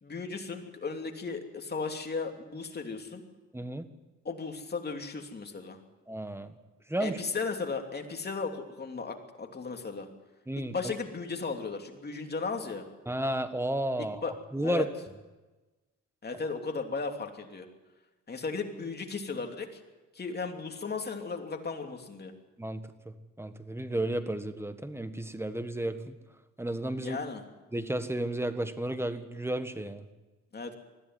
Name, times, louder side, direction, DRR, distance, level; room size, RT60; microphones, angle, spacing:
voice 1, 0.0-3.2 4.2-5.8 7.0-10.1 10.5-12.8 14.2-14.3 14.6-14.9 16.2-17.7 18.3-19.7 20.1-22.3 27.0-27.4 30.5-30.7, left 4 dB, 35° left, 4 dB, 2.9 m, -35 dB
voice 2, 3.5-3.8 6.1-6.5 6.9-7.2 10.5-10.7 13.1-14.2 14.5-14.8 22.6-26.1 26.6-27.2 27.7-30.0, right 1 dB, 10° right, 10 dB, 1.6 m, -32 dB
20.5 x 14.0 x 9.4 m, 1.2 s
cardioid pair, 90°, 30 cm